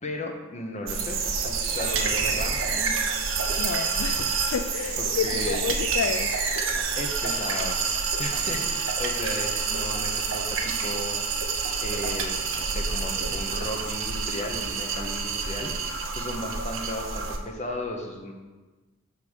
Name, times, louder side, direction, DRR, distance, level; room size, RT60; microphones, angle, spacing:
voice 1, 0.0-3.0 5.0-5.6 6.9-11.2 11.8-18.3, left 1 dB, 35° left, 0.9 m, -35 dB
sound 1, 0.9-17.4, right 5 dB, 75° right, 1.0 m, -28 dB
voice 2, 3.6-6.4, left 6 dB, 90° left, 0.4 m, -30 dB
9.8 x 3.6 x 6.3 m
head